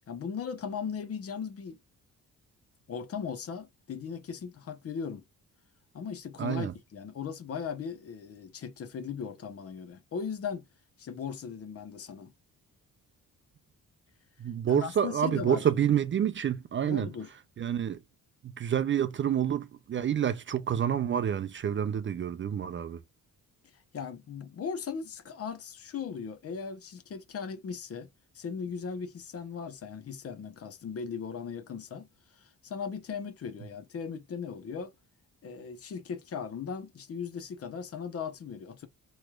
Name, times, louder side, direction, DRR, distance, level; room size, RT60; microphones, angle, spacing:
voice 1, 0.1-1.8 2.9-5.2 5.9-10.6 11.0-12.3 14.7-15.7 16.8-17.3 23.9-28.1 28.3-32.1 32.4-34.9 35.4-38.9, left 6 dB, 45° left, 0.7 m, -38 dB
voice 2, 6.4-6.7 14.4-17.1 17.6-18.0 18.4-23.0, right 9 dB, 40° right, 0.4 m, -28 dB
3.1 x 3.1 x 2.3 m
cardioid pair, 120°, 33 cm